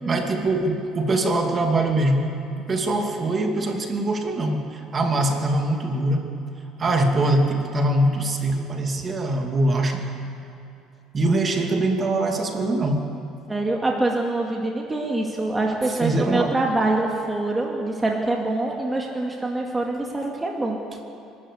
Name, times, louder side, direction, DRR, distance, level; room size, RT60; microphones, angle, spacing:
voice 1, 0.1-2.3 2.7-6.3 6.8-10.0 11.1-13.1 16.0-16.6, right 2 dB, 30° right, 3 dB, 2.6 m, -23 dB
voice 2, 13.5-20.8, right 2 dB, 15° right, 0 dB, 2.3 m, -25 dB
26.5 x 13.0 x 8.4 m, 2.8 s
cardioid pair, 110°, 0 cm